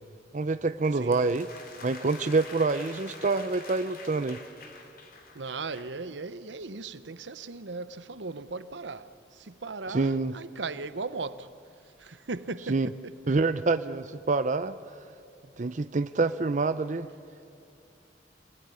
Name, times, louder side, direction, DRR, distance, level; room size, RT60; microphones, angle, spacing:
voice 1, 0.3-1.5 1.8-4.4 9.9-10.3 12.7-12.9 13.3-14.8 15.6-17.1, right 3 dB, 40° right, 0.6 m, -26 dB
sound 1, 0.8-6.0, left 3 dB, 50° left, 2.7 m, -47 dB
voice 2, 0.9-1.3 5.3-11.5 12.0-12.9, right 3 dB, 85° right, 0.9 m, -37 dB
26.0 x 19.5 x 9.7 m
head